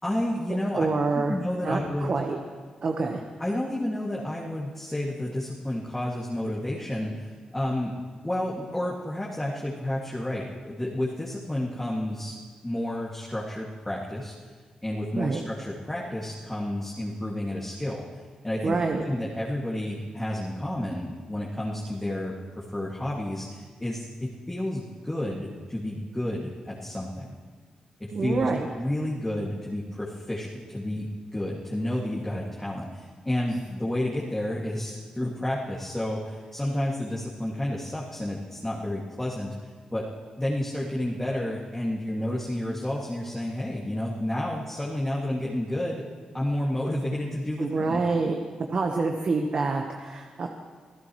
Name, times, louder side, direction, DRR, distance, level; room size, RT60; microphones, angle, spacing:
voice 1, 0.0-0.9 1.1-2.1 3.4-8.0 8.2-12.4 12.6-14.3 14.8-18.1 18.4-27.3 28.0-28.5 28.8-39.5 39.9-40.1 40.4-46.0 46.3-48.0, left 1 dB, 10° left, -5 dB, 2.3 m, -30 dB
voice 2, 0.7-1.3 1.6-2.4 2.8-3.2 15.2-15.4 18.6-19.1 28.1-28.7 47.6-48.4 48.7-50.5, right 3 dB, 50° right, 3 dB, 1.2 m, -26 dB
25.5 x 15.5 x 3.2 m, 1.5 s
cardioid pair, 85°, 2 cm